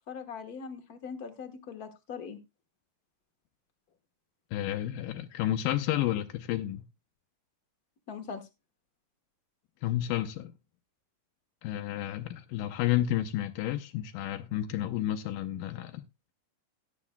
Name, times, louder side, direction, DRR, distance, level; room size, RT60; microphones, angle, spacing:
voice 1, 0.1-2.4 8.1-8.4, left 6 dB, 60° left, 0.9 m, -41 dB
voice 2, 4.5-6.8 9.8-10.5 11.6-16.0, left 13 dB, 90° left, 2.3 m, -31 dB
17.0 x 9.3 x 2.2 m
omnidirectional pair, 3.8 m